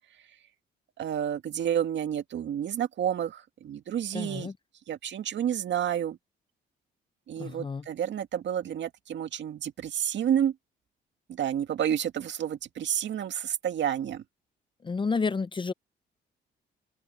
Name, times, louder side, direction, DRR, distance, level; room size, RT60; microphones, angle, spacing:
voice 1, 1.0-4.5 4.9-6.2 7.3-10.5 11.4-14.2, right 9 dB, 65° right, 2.2 m, -30 dB
voice 2, 4.1-4.5 7.4-7.9 14.8-15.7, left 4 dB, 25° left, 0.6 m, -30 dB
open air
cardioid pair, 90°, 20 cm